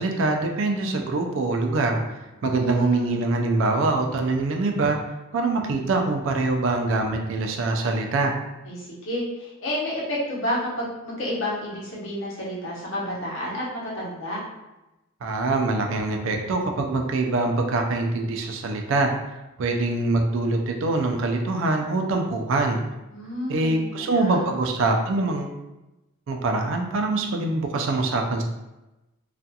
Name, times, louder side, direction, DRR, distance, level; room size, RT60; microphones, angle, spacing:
voice 1, 0.0-5.0 5.3-8.3 15.2-19.1 19.6-22.8 23.5-25.6 26.3-28.4, right 2 dB, 65° right, 3 dB, 0.4 m, -24 dB
voice 2, 2.4-3.2 8.6-14.4 23.1-24.5, left 1 dB, 65° left, -6 dB, 0.8 m, -30 dB
2.4 x 2.3 x 2.7 m, 1.0 s
head